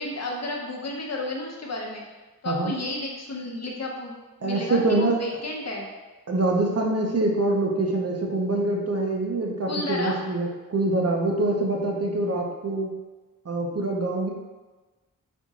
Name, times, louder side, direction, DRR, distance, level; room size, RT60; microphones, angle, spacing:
voice 1, 0.0-2.0 2.4-4.1 4.4-5.9 9.7-10.2, left 2 dB, 50° left, -1 dB, 0.8 m, -32 dB
voice 2, 4.4-5.2 6.3-12.9 13.4-14.3, right 2 dB, 45° right, 0 dB, 0.7 m, -25 dB
4.3 x 3.5 x 2.8 m, 1.2 s
wide cardioid pair, 80°, 34 cm